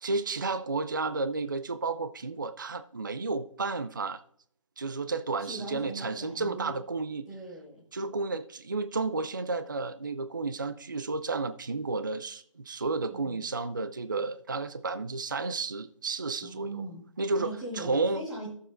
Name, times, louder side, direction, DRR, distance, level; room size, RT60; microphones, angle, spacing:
voice 1, 0.0-4.2 4.8-7.3 7.9-16.8 17.2-18.2, right 3 dB, 35° right, 0.4 m, -32 dB
voice 2, 5.4-6.7 7.3-7.8 13.1-13.4 16.4-17.0 17.4-18.5, right 1 dB, 5° right, 1.5 m, -40 dB
14.5 x 7.2 x 2.5 m
figure-of-eight pair, 170°, 18 cm